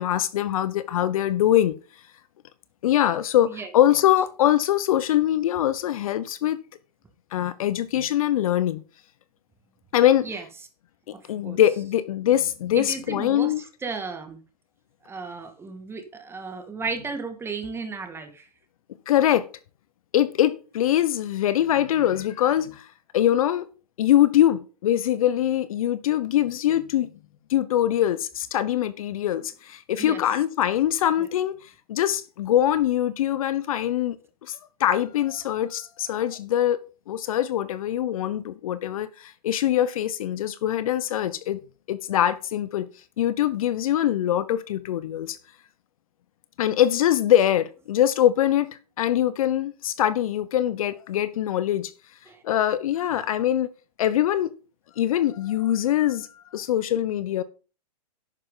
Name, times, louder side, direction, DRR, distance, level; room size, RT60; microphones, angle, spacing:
voice 1, 0.0-1.7 2.8-6.6 7.3-8.8 9.9-10.3 11.1-13.6 19.1-19.5 20.1-22.9 23.1-23.7 24.0-27.1 27.5-31.5 31.9-34.2 34.4-36.8 37.1-41.6 41.9-42.9 43.2-45.4 46.6-51.9 52.4-53.7 54.0-54.5 55.0-56.3 56.5-57.4, left 12 dB, 55° left, 0.9 m, -23 dB
voice 2, 11.1-11.6 12.8-13.5 13.8-14.4 15.0-18.5 30.0-30.2 31.2-31.3 52.3-52.4 53.1-53.2, right 4 dB, 10° right, 2.1 m, -34 dB
11.0 x 9.0 x 3.9 m
hypercardioid pair, 120°, 21 cm